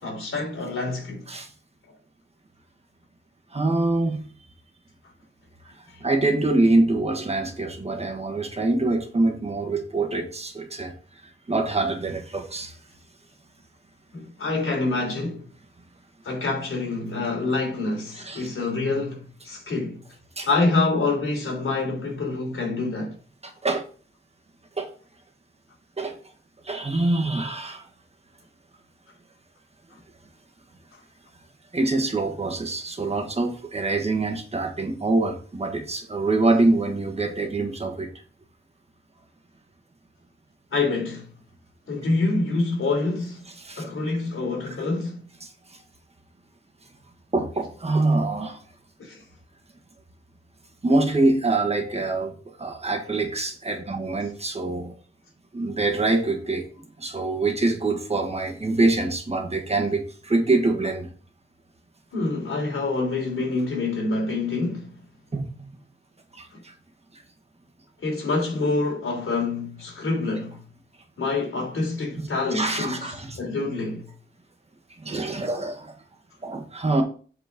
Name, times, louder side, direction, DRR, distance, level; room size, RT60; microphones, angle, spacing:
voice 1, 0.0-1.3 5.9-6.0 14.1-15.5 16.2-20.0 20.5-23.1 30.9-31.0 40.7-41.3 41.9-43.5 43.8-45.2 49.0-49.2 62.1-64.9 66.5-66.6 68.0-70.6 71.2-74.1, left 3 dB, 80° left, 3.4 m, -26 dB
voice 2, 3.5-4.2 5.8-10.9 11.5-12.8 18.1-18.5 20.4-20.5 23.4-23.8 24.8-24.9 26.0-26.2 26.6-27.9 31.7-38.1 43.6-43.9 45.4-45.8 47.3-48.6 50.8-54.9 55.5-56.7 57.0-61.1 65.3-65.7 66.3-66.7 72.5-73.4 75.0-75.9 76.4-77.0, right 2 dB, 30° right, 1.4 m, -25 dB
8.2 x 4.4 x 5.1 m
wide cardioid pair, 155°, 21 cm